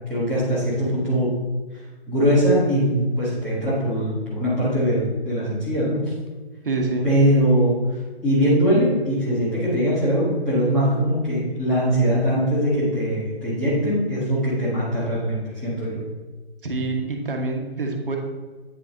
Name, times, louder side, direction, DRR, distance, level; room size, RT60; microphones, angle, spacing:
voice 1, 0.1-1.3 2.1-6.1 7.0-16.0, equal, 5° left, -12 dB, 0.7 m, -21 dB
voice 2, 6.6-7.1 16.6-18.2, right 3 dB, 55° right, 2 dB, 1.2 m, -26 dB
8.8 x 4.1 x 3.7 m, 1.3 s
figure-of-eight pair, 140°, 32 cm